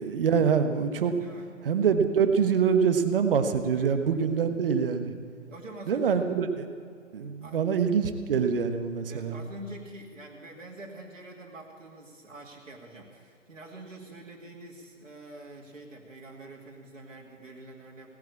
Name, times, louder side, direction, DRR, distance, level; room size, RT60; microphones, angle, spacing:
voice 1, 0.0-1.1 1.6-5.1 5.9-6.7 7.1-9.4, right 6 dB, 45° right, 8 dB, 1.3 m, -25 dB
voice 2, 5.5-6.1 7.4-7.6 9.1-18.1, right 2 dB, 75° right, -2 dB, 2.5 m, -45 dB
18.0 x 9.2 x 8.6 m, 2.2 s
figure-of-eight pair, 130°, 38 cm